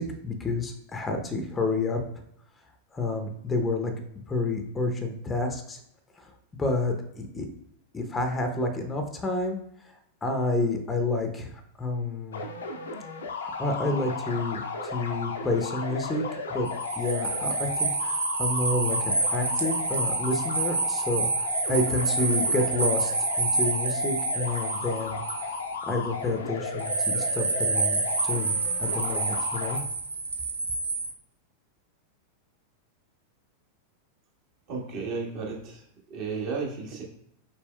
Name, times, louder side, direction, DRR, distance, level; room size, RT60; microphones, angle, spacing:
voice 1, 0.0-2.0 2.9-3.9 4.3-5.8 6.2-6.3 6.6-7.5 7.9-9.6 10.2-11.5 11.8-12.4 13.4-16.2 16.5-16.7 17.0-23.1 23.4-25.2 25.9-29.8, left 2 dB, 15° left, 5 dB, 0.7 m, -29 dB
sound 1, 12.3-29.8, left 4 dB, 65° left, 0.6 m, -34 dB
sound 2, 16.7-25.9 26.8-31.1, right 4 dB, 75° right, 0.5 m, -28 dB
voice 2, 34.7-37.0, right 4 dB, 45° right, -2 dB, 1.4 m, -34 dB
6.0 x 3.0 x 2.2 m, 0.74 s
figure-of-eight pair, 90°, 0 cm